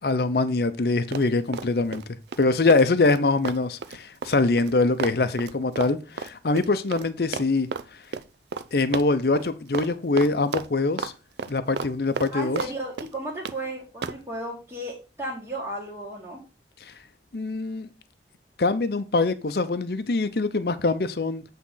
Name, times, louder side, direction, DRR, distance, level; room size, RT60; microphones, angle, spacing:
voice 1, 0.0-2.0 2.4-7.7 8.7-11.1 11.5-12.6 16.8-16.9 17.3-17.9 18.6-21.4, left 3 dB, 60° left, 0.6 m, -23 dB
Run, 1.1-2.0 2.3-7.1 7.3-7.9 8.1-8.3 8.5-8.7 8.9-9.5 9.7-9.9 10.2-11.1 11.4-12.7 13.0-13.6 14.0-14.2, right 5 dB, 70° right, 0.5 m, -32 dB
voice 2, 12.3-16.4, right 1 dB, 15° right, 1.8 m, -34 dB
8.4 x 3.7 x 5.5 m
head